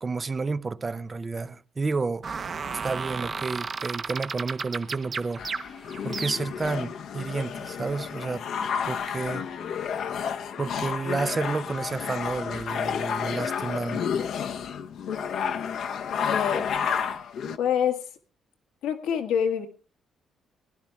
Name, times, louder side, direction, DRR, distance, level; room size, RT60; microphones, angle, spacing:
voice 1, 0.0-2.3 2.8-5.5 6.0-8.5 8.9-9.5 10.6-14.1, right 4 dB, 30° right, 0.6 m, -30 dB
sound 1, 2.2-6.7, right 5 dB, 45° right, 1.0 m, -34 dB
sound 2, 5.4-17.6, left 7 dB, 70° left, 1.0 m, -31 dB
voice 2, 15.1-15.5 16.1-16.7 17.6-18.1 18.8-19.7, left 8 dB, 90° left, 1.8 m, -27 dB
21.5 x 11.5 x 3.5 m
cardioid pair, 90°, 0 cm